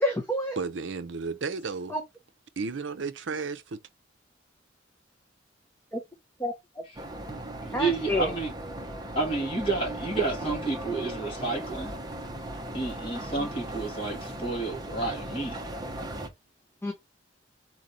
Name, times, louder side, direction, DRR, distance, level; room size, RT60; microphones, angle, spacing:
voice 1, 0.0-0.6 1.9-2.0 5.9-6.0 6.4-6.5 7.7-8.3 13.4-13.5 16.8-16.9, left 1 dB, 10° left, 0.7 m, -28 dB
voice 2, 0.6-2.0 2.6-3.8, right 4 dB, 70° right, 0.6 m, -33 dB
sound 1, 6.9-16.3, right 1 dB, 20° right, 0.8 m, -37 dB
voice 3, 7.6-8.5 9.2-11.9 12.7-15.6, right 3 dB, 30° left, 2.1 m, -30 dB
3.9 x 3.1 x 4.0 m
head